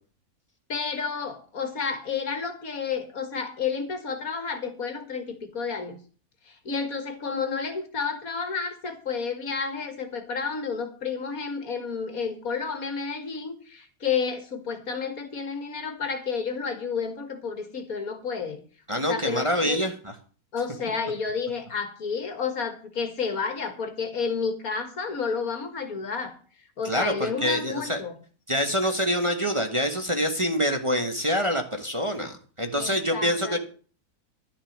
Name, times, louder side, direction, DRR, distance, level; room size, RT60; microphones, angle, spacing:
voice 1, 0.7-6.0 6.5-18.6 19.0-19.8 20.5-26.3 26.8-28.1 32.7-33.6, left 5 dB, 65° left, 8 dB, 2.2 m, -31 dB
voice 2, 18.9-19.9 26.8-28.0 28.5-33.6, equal, 20° right, 4 dB, 1.3 m, -26 dB
11.5 x 6.9 x 7.3 m, 0.41 s
omnidirectional pair, 1.6 m